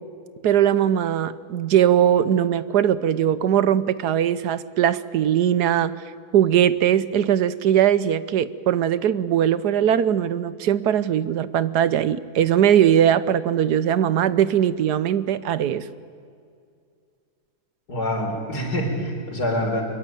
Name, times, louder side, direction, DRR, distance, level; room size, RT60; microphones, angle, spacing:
voice 1, 0.4-5.9 6.3-15.8, right 10 dB, 85° right, 15 dB, 1.4 m, -20 dB
voice 2, 17.9-19.8, equal, 90° left, 3 dB, 4.7 m, -25 dB
24.5 x 22.5 x 9.2 m, 2.3 s
omnidirectional pair, 1.7 m